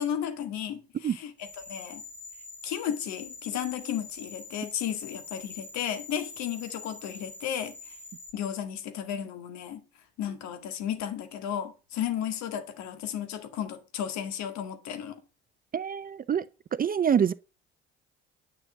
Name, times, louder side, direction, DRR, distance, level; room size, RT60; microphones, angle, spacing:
voice 1, 0.0-2.0 2.6-8.0 8.3-9.8 10.2-15.2, left 9 dB, 55° left, 1.9 m, -34 dB
sound 1, 1.4-8.3, left 3 dB, 5° right, 3.1 m, -45 dB
voice 2, 15.7-16.4 16.8-17.3, right 8 dB, 25° right, 0.6 m, -25 dB
9.8 x 6.0 x 6.5 m
figure-of-eight pair, 50°, 33 cm